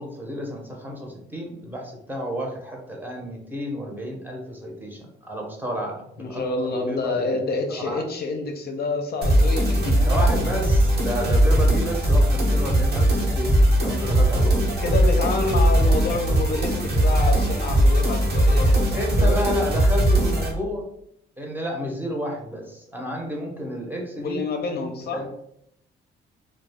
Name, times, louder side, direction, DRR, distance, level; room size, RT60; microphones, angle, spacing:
voice 1, 0.0-7.4 7.7-8.0 10.0-15.0 18.9-20.8 21.4-24.4 25.1-25.3, equal, 10° right, 0 dB, 0.7 m, -31 dB
voice 2, 6.2-10.1 12.3-12.6 14.8-19.4 24.2-25.2, left 3 dB, 55° left, 3 dB, 0.5 m, -28 dB
sound 1, 9.2-20.5, right 1 dB, 55° right, 0.9 m, -19 dB
2.3 x 2.2 x 3.4 m, 0.74 s
cardioid pair, 90°, 20 cm